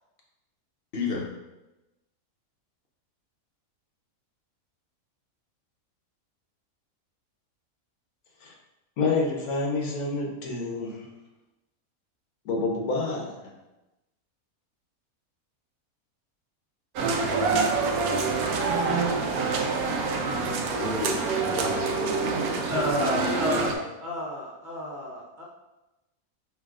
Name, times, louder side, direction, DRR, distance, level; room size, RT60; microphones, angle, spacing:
voice 1, 0.9-1.3 18.8-20.4 20.7-22.8 23.2-23.7, left 3 dB, 50° left, -1 dB, 0.9 m, -34 dB
voice 2, 9.0-11.1 12.4-13.5, left 3 dB, 90° left, -1 dB, 1.4 m, -28 dB
sound 1, 17.0-23.7, right 4 dB, 90° right, 1.1 m, -26 dB
voice 3, 22.7-25.4, left 1 dB, 40° right, -5 dB, 0.9 m, -31 dB
5.5 x 3.4 x 2.4 m, 1.0 s
omnidirectional pair, 1.5 m